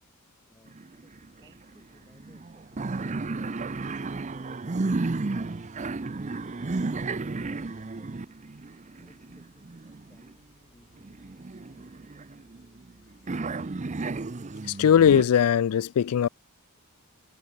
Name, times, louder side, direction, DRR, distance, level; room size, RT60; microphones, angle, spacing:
voice 1, 0.5-3.8 4.3-5.8 8.9-13.0, left 1 dB, 15° left, 4.0 m, -62 dB
sound 1, 0.7-1.4 1.7-1.8 2.1-10.3 11.0-12.9 13.3-15.2, right 3 dB, 35° right, 0.6 m, -33 dB
sound 2, 1.0-14.2, right 1 dB, 55° right, 5.8 m, -63 dB
voice 2, 14.8-16.3, left 8 dB, 90° left, 0.4 m, -19 dB
head